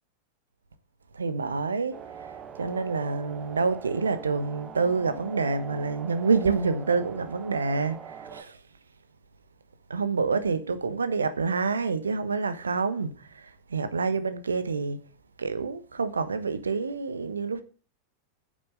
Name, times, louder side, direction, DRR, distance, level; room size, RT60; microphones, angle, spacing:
voice 1, 1.1-8.6 9.9-15.0 15.4-17.6, right 4 dB, 75° right, 1.2 m, -28 dB
sound 1, 1.9-8.4, right 7 dB, 25° right, 1.3 m, -42 dB
9.1 x 7.5 x 8.2 m
figure-of-eight pair, 90°, 0 cm